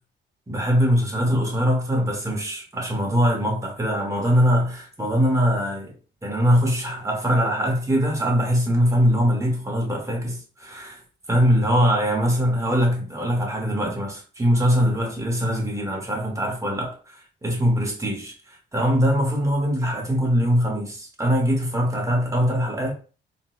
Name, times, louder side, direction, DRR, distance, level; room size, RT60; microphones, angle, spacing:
voice 1, 0.5-5.9 6.2-11.0 11.3-16.9 17.4-18.3 18.7-22.9, equal, 15° right, 1.1 m, -22 dB
3.8 x 2.3 x 2.3 m
cardioid pair, 90°, 20 cm